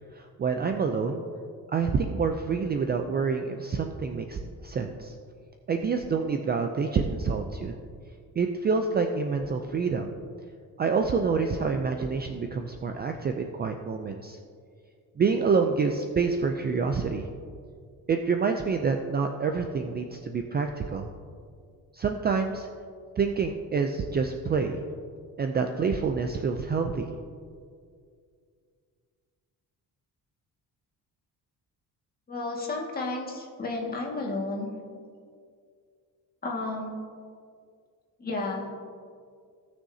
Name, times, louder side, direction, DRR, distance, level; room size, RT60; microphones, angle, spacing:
voice 1, 0.2-1.2 1.7-5.1 5.7-7.7 8.4-10.1 10.8-14.4 15.2-17.3 18.1-21.1 21.9-22.7 23.2-24.8 25.4-27.1, right 5 dB, 30° right, 5 dB, 0.4 m, -27 dB
voice 2, 32.3-34.7 36.4-37.0 38.2-38.7, left 2 dB, 25° left, -2 dB, 1.8 m, -32 dB
17.5 x 6.3 x 2.7 m, 2.2 s
cardioid pair, 150°, 36 cm